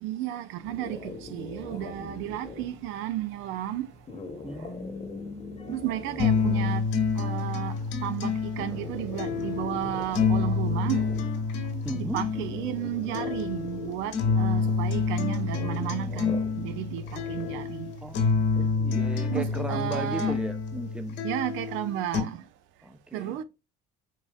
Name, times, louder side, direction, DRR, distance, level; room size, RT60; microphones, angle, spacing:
voice 1, 0.0-3.9 5.7-6.8 7.2-11.1 11.9-17.9 19.3-20.4 21.2-22.4 23.1-23.4, right 12 dB, 65° right, 0.5 m, -33 dB
sound 1, 0.6-18.6, left 3 dB, 30° left, 1.0 m, -43 dB
voice 2, 4.4-5.8 11.8-12.3 18.0-21.2 22.8-23.4, right 1 dB, 5° right, 0.6 m, -37 dB
sound 2, 6.2-22.2, left 5 dB, 65° left, 1.2 m, -28 dB
4.6 x 2.6 x 2.3 m
hypercardioid pair, 70°, 21 cm